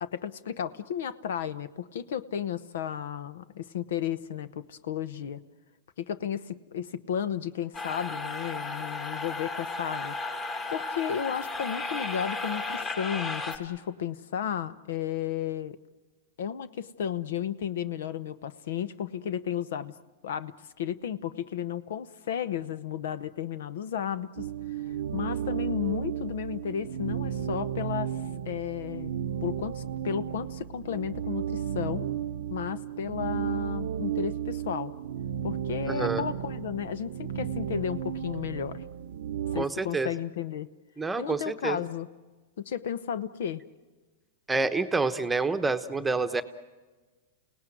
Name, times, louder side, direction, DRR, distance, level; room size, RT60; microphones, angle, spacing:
voice 1, 0.0-5.4 6.0-10.1 10.7-15.8 16.4-19.9 20.2-24.5 25.1-28.1 28.5-29.1 29.4-32.1 32.5-34.9 35.4-38.8 39.5-40.7 41.2-42.1 42.6-43.6, left 9 dB, 75° left, 15 dB, 0.9 m, -33 dB
sound 1, 7.7-13.6, left 3 dB, 25° left, 2.5 m, -34 dB
sound 2, 24.4-39.6, right 9 dB, 75° right, 0.7 m, -33 dB
voice 2, 35.9-36.2 39.6-40.1 41.0-41.9 44.5-46.4, right 3 dB, 10° right, 9 dB, 1.0 m, -28 dB
29.5 x 18.0 x 9.2 m, 1.3 s
hypercardioid pair, 130°, 0 cm